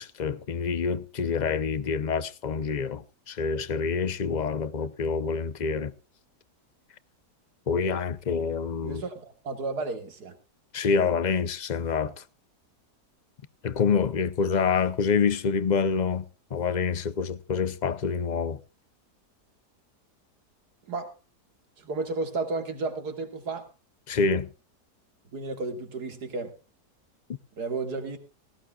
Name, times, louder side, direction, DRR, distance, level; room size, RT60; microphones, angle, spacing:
voice 1, 0.0-5.9 7.7-9.0 10.7-12.2 13.6-16.2 16.5-18.6 24.1-24.5, left 5 dB, 50° left, 0.5 m, -27 dB
voice 2, 8.8-10.3 20.9-21.1 21.8-23.7 25.3-26.5 27.6-28.2, right 3 dB, 75° right, 2.6 m, -32 dB
17.5 x 17.5 x 2.4 m
omnidirectional pair, 1.7 m